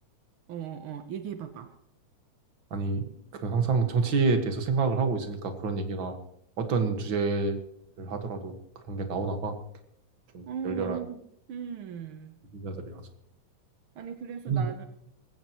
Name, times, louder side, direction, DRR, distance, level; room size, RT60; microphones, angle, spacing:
voice 1, 0.5-1.7 10.5-11.2 11.5-12.4 13.9-14.9, right 7 dB, 70° right, 7 dB, 1.2 m, -37 dB
voice 2, 2.7-6.2 6.6-7.6 8.0-9.6 10.3-11.0 12.5-13.0 14.5-14.7, right 4 dB, 45° right, 6 dB, 1.9 m, -28 dB
20.5 x 16.5 x 3.1 m, 0.71 s
omnidirectional pair, 3.6 m